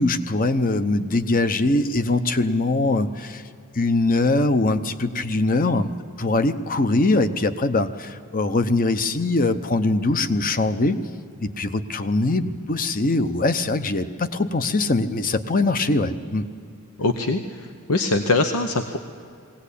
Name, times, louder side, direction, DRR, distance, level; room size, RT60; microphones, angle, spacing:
voice 1, 0.0-3.4 3.7-5.9 6.2-11.0 11.4-16.5, left 2 dB, 40° left, 11 dB, 0.8 m, -22 dB
voice 2, 17.0-19.0, left 2 dB, 85° left, 6 dB, 1.0 m, -23 dB
20.5 x 17.5 x 8.4 m, 2.5 s
head